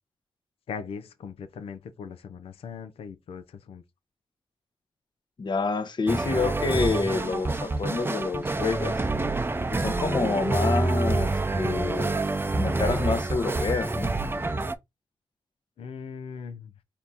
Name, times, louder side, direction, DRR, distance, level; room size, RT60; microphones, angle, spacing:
voice 1, 0.7-3.8 15.8-16.7, left 6 dB, 75° left, 0.7 m, -39 dB
voice 2, 5.4-9.1 9.7-12.1 12.6-14.1, left 4 dB, 50° left, 1.0 m, -28 dB
sound 1, 6.1-14.7, right 2 dB, 20° right, 0.6 m, -27 dB
4.3 x 2.7 x 3.6 m
supercardioid pair, 45°, 10 cm